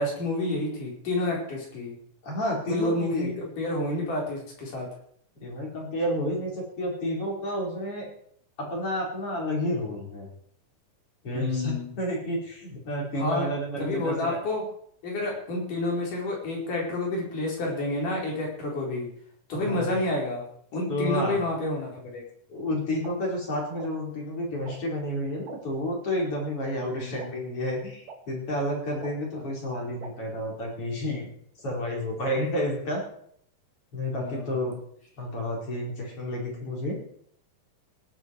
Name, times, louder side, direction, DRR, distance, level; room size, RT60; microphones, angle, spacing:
voice 1, 0.0-1.9 2.7-4.9 11.3-11.9 13.2-13.5 13.8-14.6 15.0-19.1 19.5-20.4 20.7-22.2 26.9-27.2 34.2-34.7, left 2 dB, 70° left, -2 dB, 6.2 m, -29 dB
voice 2, 2.2-3.3 5.4-8.1 8.6-10.3 11.2-14.4 19.6-19.9 20.9-21.4 22.5-31.3 31.6-33.0 33.9-34.7 35.2-37.0, left 1 dB, 40° left, -2 dB, 5.7 m, -30 dB
sound 1, 23.0-23.1 23.8-23.9 24.7-24.8 25.5-25.6 26.4-26.5 27.2-27.3 28.1-28.2 29.0-29.1 30.0-30.1, right 6 dB, 75° right, 3.1 m, -40 dB
18.0 x 12.0 x 4.8 m, 0.65 s
omnidirectional pair, 3.8 m